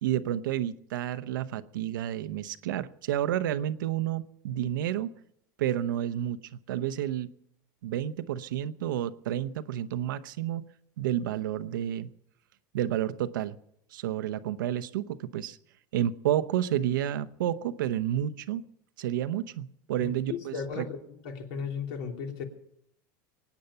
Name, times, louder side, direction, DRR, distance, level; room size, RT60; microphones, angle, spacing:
voice 1, 0.0-5.1 5.6-6.4 6.7-7.3 7.8-10.7 11.0-12.1 12.7-13.6 13.9-15.6 15.9-18.6 19.0-20.8, right 11 dB, 90° right, 12 dB, 0.9 m, -30 dB
voice 2, 20.0-21.0 21.2-22.4, left 6 dB, 70° left, 3 dB, 3.2 m, -35 dB
23.5 x 9.4 x 5.7 m, 0.74 s
supercardioid pair, 130°, 11 cm